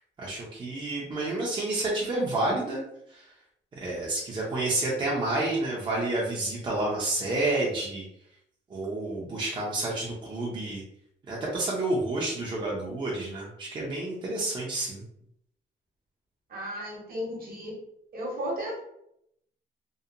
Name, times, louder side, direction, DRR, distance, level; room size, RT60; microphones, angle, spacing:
voice 1, 0.2-2.8 3.1-3.3 3.7-8.0 8.7-10.8 11.3-15.0, right 2 dB, 25° right, -4 dB, 0.4 m, -29 dB
voice 2, 16.5-17.7 18.1-18.8, equal, 50° right, -2 dB, 0.8 m, -34 dB
2.7 x 2.1 x 2.4 m, 0.76 s
wide cardioid pair, 175°, 19 cm